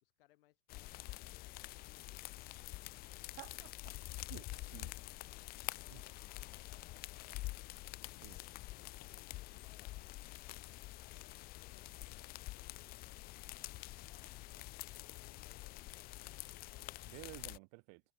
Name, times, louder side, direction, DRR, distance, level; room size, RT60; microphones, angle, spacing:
voice 1, 0.0-2.6 4.5-5.2 5.5-7.6 8.3-14.3 15.2-16.5, left 17 dB, 65° left, 3.0 m, -72 dB
sound 1, 0.7-17.6, left 19 dB, 30° left, 0.5 m, -47 dB
voice 2, 3.4-3.9 4.3-4.9 5.9-6.0 8.2-8.4 17.1-18.0, right 40 dB or more, 50° right, 1.3 m, -53 dB
sound 2, 8.0-17.1, right 5 dB, 15° right, 6.7 m, -75 dB
hypercardioid pair, 115°, 30 cm